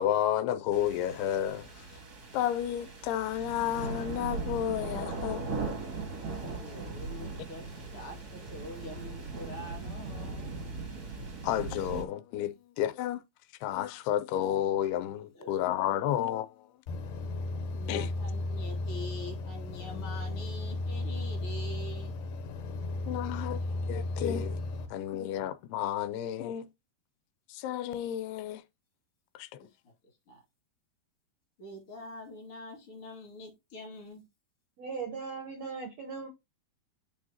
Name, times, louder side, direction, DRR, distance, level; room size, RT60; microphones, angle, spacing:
voice 1, 0.0-1.7 2.3-5.4 11.4-13.2 13.6-16.5 17.9-18.1 23.1-24.6 24.9-26.7 27.5-28.6 29.4-29.5, left 11 dB, 90° left, 2.7 m, -31 dB
sound 1, 0.7-12.0, right 3 dB, 45° right, 1.2 m, -39 dB
voice 2, 6.3-10.5 15.3-15.6 17.7-22.1 29.6-29.7 30.3-30.4 31.6-34.2, left 1 dB, 40° left, 2.7 m, -45 dB
sound 2, 16.9-24.9, left 2 dB, 70° left, 2.4 m, -35 dB
voice 3, 34.8-36.3, right 5 dB, 70° right, 1.6 m, -38 dB
8.7 x 4.7 x 2.9 m
omnidirectional pair, 4.5 m